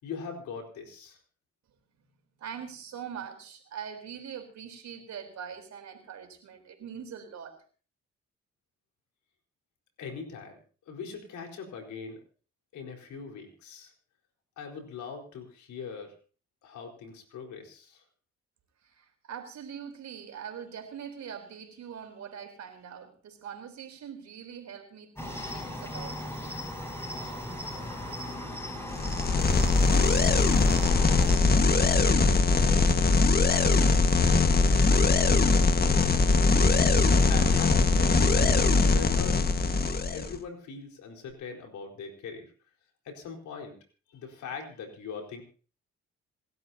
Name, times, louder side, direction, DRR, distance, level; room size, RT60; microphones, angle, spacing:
voice 1, 0.0-1.2 10.0-10.6 10.9-12.2 12.7-13.9 14.6-16.1 16.6-18.0 37.3-39.4 40.1-42.5 43.0-43.8 44.1-45.4, left 5 dB, 80° left, 2 dB, 4.4 m, -41 dB
voice 2, 2.4-7.6 18.8-26.2, right 8 dB, 70° right, 5 dB, 4.0 m, -42 dB
Cricket, 25.2-31.4, left 1 dB, 10° left, 7.6 m, -37 dB
sound 1, 28.9-40.3, left 4 dB, 35° left, 1.6 m, -22 dB
27.5 x 12.5 x 2.8 m, 0.40 s
supercardioid pair, 60°, 29 cm